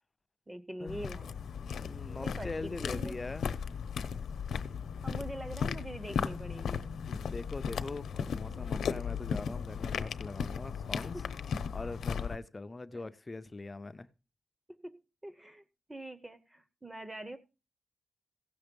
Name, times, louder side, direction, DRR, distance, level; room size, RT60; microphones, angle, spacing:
voice 1, 0.5-1.4 1.7-3.2 5.0-6.8 11.1-11.2 12.9-13.1 14.8-15.6 15.9-17.4, right 1 dB, 10° right, 10 dB, 0.8 m, -44 dB
sound 1, 0.9-12.4, left 6 dB, 85° left, 0.8 m, -36 dB
voice 2, 1.8-3.5 7.2-11.2 11.7-14.1, left 3 dB, 20° left, 13 dB, 0.5 m, -42 dB
16.0 x 6.8 x 5.2 m, 0.31 s
wide cardioid pair, 175°, 0 cm